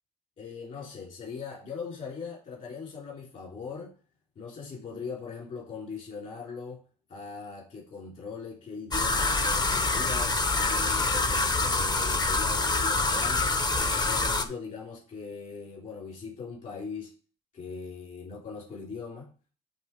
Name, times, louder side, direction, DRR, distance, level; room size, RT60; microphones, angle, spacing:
voice 1, 0.4-3.9 4.4-6.8 7.1-13.7 14.0-17.1 17.5-19.3, left 5 dB, 50° left, 3.8 m, -40 dB
sound 1, 8.9-14.4, left 3 dB, 25° left, 0.7 m, -26 dB
9.0 x 3.5 x 4.7 m
cardioid pair, 110°, 17 cm